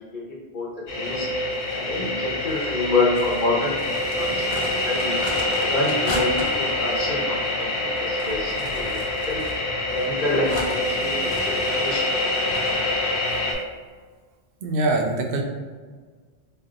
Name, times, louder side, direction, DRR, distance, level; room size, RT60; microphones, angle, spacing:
sound 1, 0.9-13.5, left 2 dB, 75° left, 1.1 m, -26 dB
voice 1, 0.9-1.3 1.7-3.8 4.1-5.2 5.6-9.0 9.3-9.4 9.9-12.1, left 2 dB, 55° left, -4 dB, 1.0 m, -27 dB
sound 2, 3.1-11.0 11.2-12.2 12.5-13.0, left 1 dB, 35° left, 0.5 m, -36 dB
voice 2, 14.6-15.4, right 2 dB, 65° right, 3 dB, 0.7 m, -23 dB
4.0 x 3.3 x 2.5 m, 1.5 s
omnidirectional pair, 1.1 m